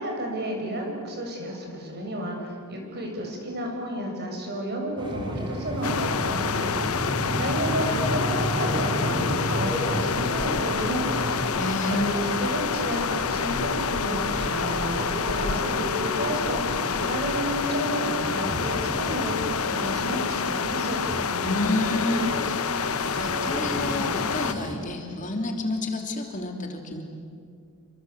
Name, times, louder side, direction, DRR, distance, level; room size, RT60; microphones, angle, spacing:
voice 1, 0.0-21.0, right 1 dB, 45° right, 1 dB, 7.1 m, -32 dB
sound 1, 5.0-24.8, equal, 20° right, 3.8 m, -33 dB
sound 2, 5.8-24.5, left 5 dB, 75° left, 1.0 m, -28 dB
voice 2, 11.6-12.1 21.3-27.0, left 2 dB, 35° left, 3 dB, 3.0 m, -30 dB
28.0 x 25.5 x 8.3 m, 2.3 s
head